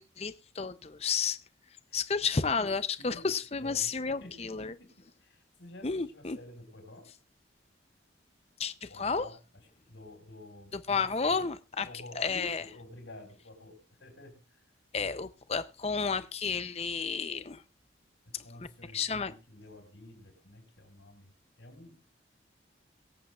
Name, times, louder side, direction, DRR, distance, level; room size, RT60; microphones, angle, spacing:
voice 1, 0.0-1.4 1.9-4.7 5.8-6.4 8.6-9.3 10.9-11.9 12.2-12.6 14.9-17.6 18.9-19.3, left 5 dB, 35° left, 0.6 m, -31 dB
voice 2, 1.9-7.1 8.9-11.5 11.8-14.6 18.3-22.1, left 1 dB, 85° left, 5.7 m, -50 dB
23.0 x 8.4 x 2.4 m
head